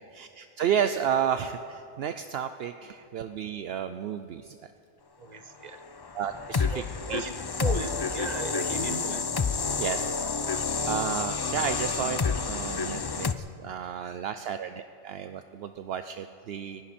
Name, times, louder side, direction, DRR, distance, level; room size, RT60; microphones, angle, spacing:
voice 1, 0.1-4.6 6.1-6.8 7.1-7.2 7.6-7.7 9.8-10.1 10.9-16.8, right 8 dB, 70° right, 9 dB, 0.8 m, -32 dB
voice 2, 5.2-5.9 6.7-9.4, right 3 dB, 40° right, 9 dB, 0.9 m, -37 dB
sound 1, 6.0-13.3, left 5 dB, 40° left, 0.3 m, -29 dB
29.0 x 11.0 x 4.3 m, 2.7 s
omnidirectional pair, 1.1 m